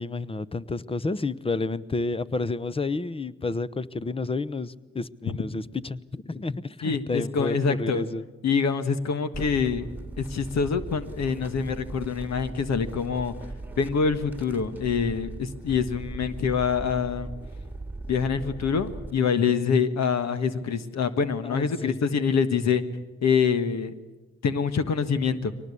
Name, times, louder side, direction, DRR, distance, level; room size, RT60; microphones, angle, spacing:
voice 1, 0.0-8.2 21.4-22.0, left 3 dB, 20° left, 18 dB, 0.8 m, -30 dB
voice 2, 6.8-8.0 8.4-9.8 10.2-13.3 13.8-17.3 18.1-22.8 23.2-23.9 24.4-25.5, left 6 dB, 60° left, 11 dB, 1.5 m, -25 dB
sound 1, 9.3-19.1, right 2 dB, 5° right, 2.0 m, -39 dB
23.0 x 19.0 x 8.5 m, 1.2 s
cardioid pair, 90°, 30 cm